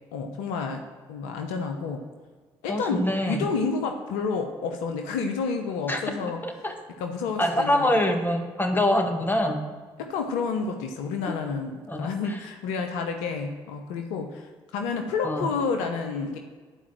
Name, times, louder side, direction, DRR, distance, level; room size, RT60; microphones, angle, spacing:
voice 1, 0.1-0.8 1.1-2.0 2.6-6.4 7.0-8.0 10.0-14.5 14.7-16.4, left 5 dB, 80° left, 5 dB, 0.8 m, -30 dB
voice 2, 2.7-3.4 5.9-6.0 6.4-6.7 7.4-9.6 11.9-12.4 15.2-15.5, left 1 dB, 15° left, 4 dB, 1.8 m, -25 dB
11.0 x 4.8 x 7.4 m, 1.5 s
hypercardioid pair, 50°, 12 cm